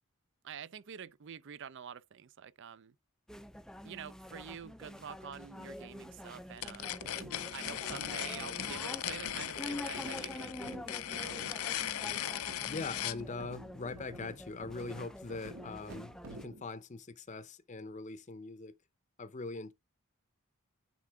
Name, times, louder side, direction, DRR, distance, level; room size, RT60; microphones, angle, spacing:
voice 1, 0.4-2.9 3.8-7.1 7.5-10.5 11.1-11.5, right 7 dB, 55° right, 0.5 m, -47 dB
sound 1, 3.3-16.5, left 1 dB, 5° left, 0.3 m, -47 dB
sound 2, 6.6-13.2, left 11 dB, 80° left, 0.6 m, -38 dB
sound 3, 7.0-16.7, right 1 dB, 85° right, 2.4 m, -51 dB
voice 2, 12.6-18.7 19.2-19.7, left 3 dB, 35° left, 0.6 m, -42 dB
9.4 x 3.7 x 3.5 m
head